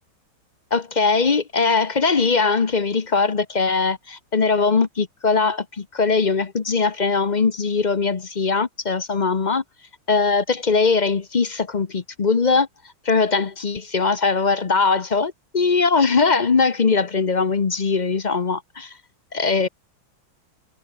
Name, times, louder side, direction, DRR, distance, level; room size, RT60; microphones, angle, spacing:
voice 1, 0.7-9.6 10.1-12.7 13.0-18.9 19.3-19.7, left 4 dB, 35° left, 0.7 m, -20 dB
omnidirectional pair, 2.1 m